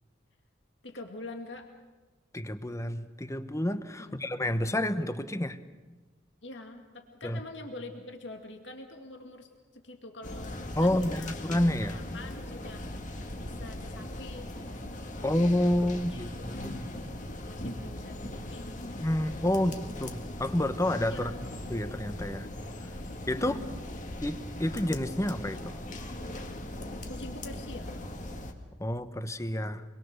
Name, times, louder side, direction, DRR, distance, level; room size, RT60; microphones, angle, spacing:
voice 1, 0.8-1.7 4.0-4.3 6.4-11.6 11.9-12.9 13.4-14.5 15.2-15.4 15.8-16.8 17.5-18.8 19.5-19.6 21.1-21.5 23.3-23.7 27.1-27.9, left 2 dB, 80° left, 4 dB, 2.3 m, -45 dB
voice 2, 2.3-5.6 7.2-7.4 10.7-12.0 15.2-16.7 19.0-19.7 20.0-22.5 23.3-23.5 24.2-25.8 28.8-29.8, left 1 dB, 15° left, 11 dB, 1.0 m, -29 dB
sound 1, 10.2-28.5, left 1 dB, 45° left, 2.0 m, -39 dB
25.0 x 22.0 x 6.7 m, 1.2 s
head